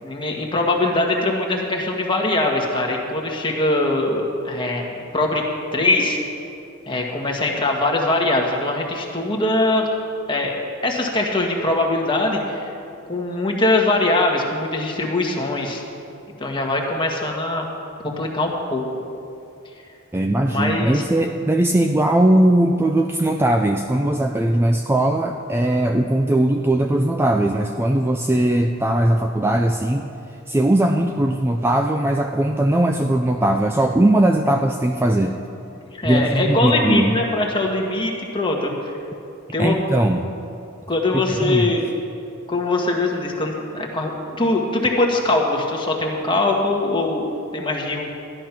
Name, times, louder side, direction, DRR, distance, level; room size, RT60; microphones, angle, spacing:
voice 1, 0.0-5.4 5.7-6.2 6.9-9.9 10.3-12.7 13.1-15.8 16.4-17.7 18.0-18.8 20.4-21.0 35.9-38.9 39.5-39.8 40.9-41.9 42.5-44.1 44.4-48.1, left 2 dB, 20° left, 0 dB, 1.6 m, -22 dB
voice 2, 20.1-30.1 30.5-35.4 36.0-37.1 39.6-40.3 41.1-41.7, right 1 dB, 10° right, 4 dB, 0.4 m, -19 dB
13.0 x 10.5 x 5.9 m, 2.7 s
head